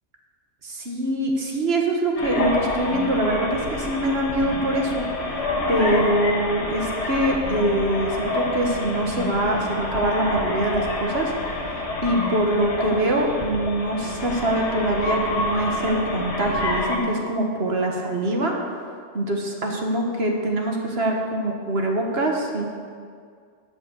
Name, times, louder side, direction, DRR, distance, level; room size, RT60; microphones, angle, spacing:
voice 1, 0.6-5.1 5.7-11.7 12.0-18.5 19.1-22.6, right 1 dB, 50° right, 1 dB, 1.6 m, -24 dB
sound 1, 2.2-17.0, left 2 dB, 55° left, 1.7 m, -27 dB
11.5 x 5.6 x 8.3 m, 2.1 s
omnidirectional pair, 1.4 m